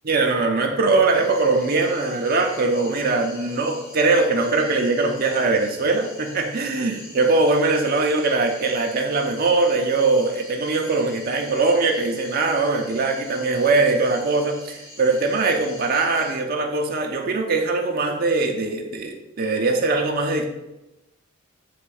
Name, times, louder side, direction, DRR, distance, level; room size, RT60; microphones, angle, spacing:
voice 1, 0.0-20.5, right 3 dB, 40° right, 3 dB, 0.6 m, -21 dB
sound 1, 1.1-16.3, left 1 dB, 55° left, 2.1 m, -44 dB
7.9 x 3.3 x 4.7 m, 0.97 s
head